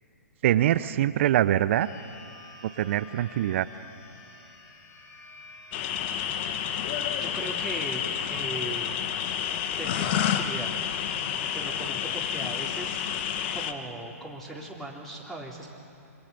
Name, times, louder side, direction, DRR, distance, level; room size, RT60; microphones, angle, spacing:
voice 1, 0.4-1.9 2.6-3.7, right 12 dB, 50° right, 15 dB, 0.8 m, -24 dB
sound 1, 1.8-11.7, left 3 dB, 30° left, 6.4 m, -51 dB
sound 2, 5.7-13.7, left 9 dB, 45° left, 1.5 m, -30 dB
voice 2, 7.2-8.0 8.3-9.1 9.8-10.8 11.5-15.7, right 1 dB, 5° left, -2 dB, 3.3 m, -38 dB
26.5 x 25.0 x 6.9 m, 2.7 s
hypercardioid pair, 125°, 9 cm